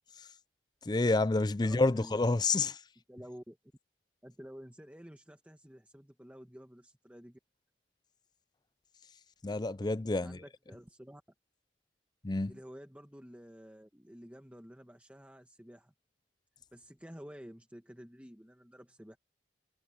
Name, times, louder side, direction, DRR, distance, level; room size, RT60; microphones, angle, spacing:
voice 1, 0.9-2.8 9.4-10.4 12.2-12.5, left 3 dB, 25° left, 0.5 m, -28 dB
voice 2, 1.6-2.1 3.1-3.6 4.2-7.4 10.2-11.2 12.5-15.9 16.7-19.2, equal, 10° right, 1.6 m, -51 dB
head